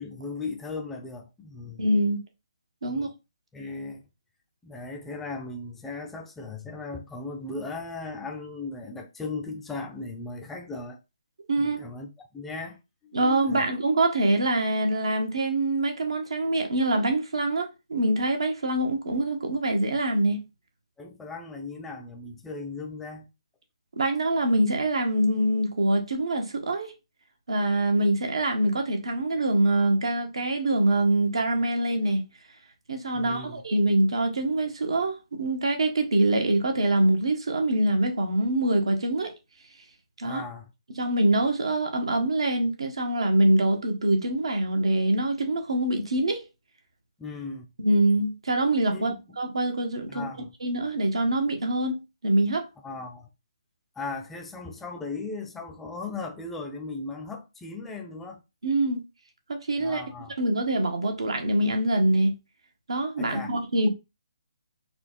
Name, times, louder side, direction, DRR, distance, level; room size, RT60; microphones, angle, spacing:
voice 1, 0.0-1.9 2.9-3.1 3.5-4.1 4.6-11.0 11.6-13.2 13.4-13.7 21.0-23.3 33.1-33.6 40.2-40.7 47.2-47.7 48.9-49.2 50.1-50.5 52.8-53.3 54.0-58.4 59.8-60.4 63.2-63.5, left 3 dB, 5° left, 0.6 m, -37 dB
voice 2, 1.8-2.2 2.8-3.1 11.5-11.8 13.1-20.4 24.0-26.9 27.5-32.2 32.9-39.3 40.2-40.4 40.9-46.4 47.8-50.3 50.6-52.6 58.6-59.0 59.5-60.0 60.4-62.3 62.9-63.9, right 1 dB, 75° right, 1.3 m, -24 dB
4.3 x 2.4 x 4.4 m
hypercardioid pair, 155°, 3 cm